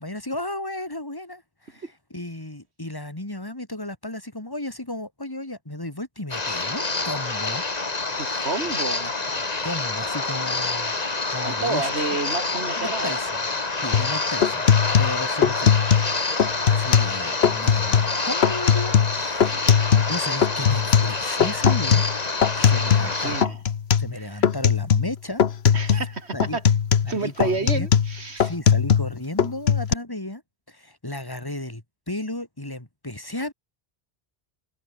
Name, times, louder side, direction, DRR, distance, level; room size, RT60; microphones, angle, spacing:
voice 1, 0.0-7.6 8.2-8.5 9.6-10.9 11.3-11.9 12.8-13.4 13.8-14.7 15.0-15.7 16.7-19.6 19.9-22.0 22.5-23.4 24.0-25.4 25.9-26.0 26.3-26.6 27.0-27.9 28.3-30.4 30.7-33.5, left 1 dB, 20° left, 2.9 m, -34 dB
sound 1, 6.3-23.5, left 3 dB, 40° left, 1.9 m, -27 dB
voice 2, 8.2-9.1 11.4-13.2 19.4-19.7 22.9-23.6 24.1-24.5 25.7-26.6 27.1-28.5, right 3 dB, 90° right, 2.8 m, -30 dB
sound 2, 13.9-14.1 14.4-16.1 16.4-17.2 17.4-18.1 18.4-20.2 20.4-23.1 23.4-24.1 24.4-25.1 25.4-26.1 26.4-29.1 29.4-29.9, left 7 dB, 75° left, 1.2 m, -20 dB
omnidirectional pair, 1.1 m